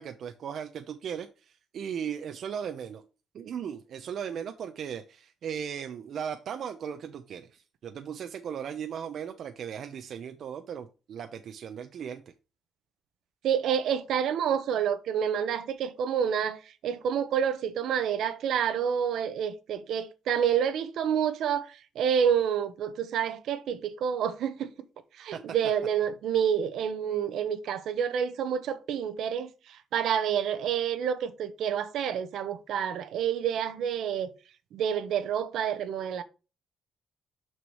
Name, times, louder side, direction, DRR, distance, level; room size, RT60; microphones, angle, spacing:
voice 1, 0.0-3.0 3.3-12.2 25.3-25.4, right 8 dB, 65° right, 0.7 m, -37 dB
voice 2, 13.4-24.7 25.2-34.3 34.7-36.2, right 8 dB, 80° right, 1.0 m, -28 dB
6.3 x 6.0 x 4.7 m
cardioid pair, 115°, 0 cm